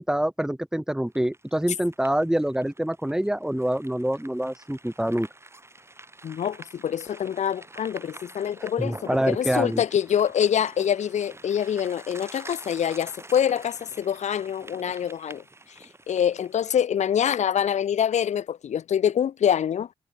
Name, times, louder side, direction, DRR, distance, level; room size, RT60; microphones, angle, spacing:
voice 1, 0.0-5.3 8.8-9.8, right 1 dB, 5° right, 1.6 m, -26 dB
sound 1, 1.1-16.6, right 2 dB, 20° right, 7.7 m, -47 dB
voice 2, 6.2-15.4 16.1-19.9, left 9 dB, 80° left, 1.4 m, -25 dB
cardioid pair, 60°, 12 cm